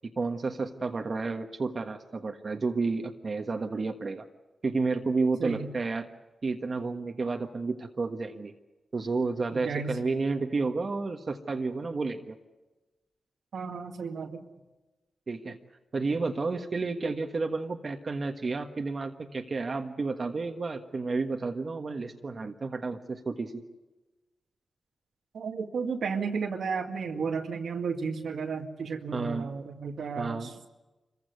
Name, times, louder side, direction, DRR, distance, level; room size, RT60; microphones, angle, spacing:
voice 1, 0.2-4.2 4.6-6.1 6.4-8.5 8.9-12.4 15.3-15.6 15.9-23.6 29.1-29.5 30.2-30.5, right 3 dB, 55° right, 4 dB, 1.5 m, -31 dB
voice 2, 5.4-5.7 9.5-10.0 13.5-14.5 25.3-30.7, right 5 dB, 80° right, 4 dB, 2.0 m, -33 dB
25.0 x 15.5 x 9.5 m, 1.1 s
cardioid pair, 45°, 0 cm